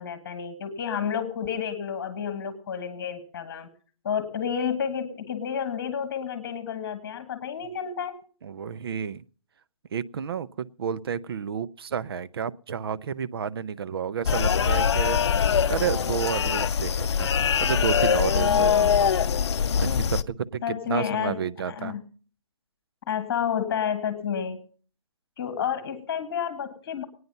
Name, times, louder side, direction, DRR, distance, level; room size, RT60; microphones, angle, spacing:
voice 1, 0.0-3.7 4.0-8.2 18.3-19.0 20.6-21.4 21.7-22.0 23.1-24.6 25.4-27.1, left 8 dB, 30° left, 8 dB, 1.8 m, -30 dB
voice 2, 8.4-9.2 9.9-17.3 17.6-19.1 19.8-22.0, right 7 dB, 50° right, 16 dB, 0.6 m, -31 dB
sound 1, 14.2-20.2, left 7 dB, 60° left, 0.6 m, -23 dB
20.0 x 9.5 x 5.5 m, 0.42 s
hypercardioid pair, 160°, 16 cm